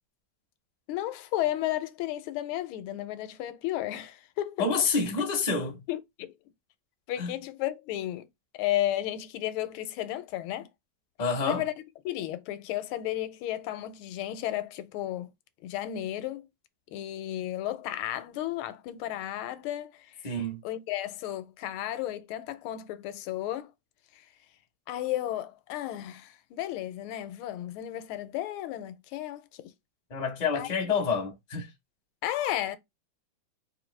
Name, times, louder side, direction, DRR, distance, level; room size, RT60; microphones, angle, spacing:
voice 1, 0.9-4.7 5.9-6.3 7.1-8.3 8.5-10.7 11.4-11.7 12.0-15.3 15.6-16.5 16.9-20.3 20.6-23.7 24.2-24.3 24.9-29.7 30.5-30.9 32.2-32.8, left 13 dB, 80° left, 1.4 m, -33 dB
voice 2, 4.6-5.7 7.2-7.3 11.2-11.6 20.2-20.6 30.1-31.7, left 4 dB, 40° left, 0.6 m, -28 dB
4.3 x 2.6 x 3.2 m
omnidirectional pair, 2.4 m